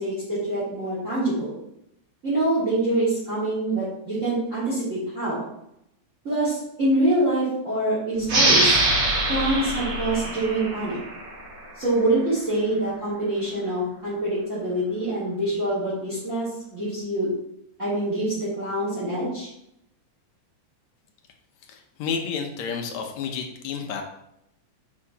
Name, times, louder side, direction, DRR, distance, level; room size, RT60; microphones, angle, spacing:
voice 1, 0.0-1.5 2.2-5.4 6.2-8.8 9.3-11.0 11.7-17.3 17.8-19.5, right 1 dB, 25° right, -10 dB, 3.1 m, -25 dB
sound 1, 8.3-11.5, right 1 dB, 75° right, 4.1 m, -23 dB
voice 2, 21.7-24.0, left 6 dB, 75° left, 4 dB, 2.0 m, -30 dB
7.3 x 6.8 x 2.9 m, 0.79 s
omnidirectional pair, 3.4 m